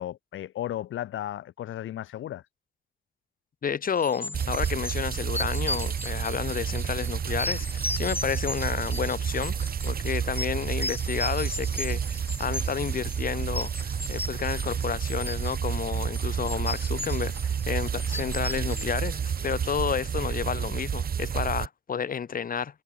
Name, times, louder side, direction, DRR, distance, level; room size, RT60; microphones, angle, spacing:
voice 1, 0.0-2.4, left 12 dB, 75° left, 7.0 m, -34 dB
voice 2, 3.6-22.8, left 7 dB, 45° left, 2.4 m, -31 dB
sound 1, 4.0-19.8, left 2 dB, 10° left, 2.5 m, -37 dB
sound 2, 4.3-21.7, right 7 dB, 50° right, 2.4 m, -30 dB
cardioid pair, 90°, 20 cm